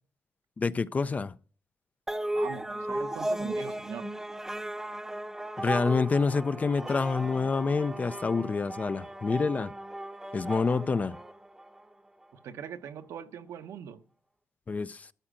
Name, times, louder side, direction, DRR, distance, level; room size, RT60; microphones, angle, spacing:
voice 1, 0.6-1.3 5.6-9.7 10.3-11.2 14.7-15.1, left 4 dB, 30° left, 0.4 m, -27 dB
sound 1, 2.1-11.9, right 1 dB, 10° right, 0.7 m, -36 dB
voice 2, 2.3-4.1 12.3-14.0, right 8 dB, 75° right, 0.9 m, -41 dB
13.5 x 4.8 x 7.7 m
cardioid pair, 105°, 5 cm